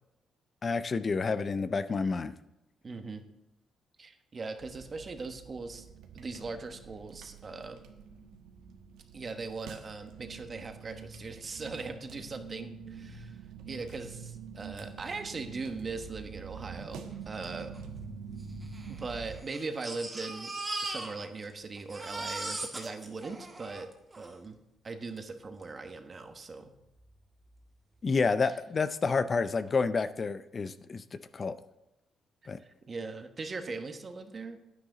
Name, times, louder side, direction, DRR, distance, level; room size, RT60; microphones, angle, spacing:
voice 1, 0.6-2.3 28.0-31.0 31.3-31.5 32.5-32.6, left 4 dB, 40° left, 12 dB, 0.5 m, -29 dB
voice 2, 2.8-3.2 4.0-5.9 6.1-7.8 9.1-13.4 13.7-17.7 18.9-20.5 20.8-23.9 24.2-24.6 24.8-26.7 32.6-34.6, right 3 dB, 35° right, 7 dB, 1.2 m, -40 dB
sound 1, 4.6-19.4, right 6 dB, 90° right, 1.1 m, -46 dB
Crying sobbing, 17.4-17.5 17.7-17.8 18.6-21.5 21.8-24.3 25.2-25.3 25.6-25.7, right 2 dB, 20° right, 1.9 m, -39 dB
9.9 x 9.5 x 3.9 m, 0.92 s
cardioid pair, 90°, 0 cm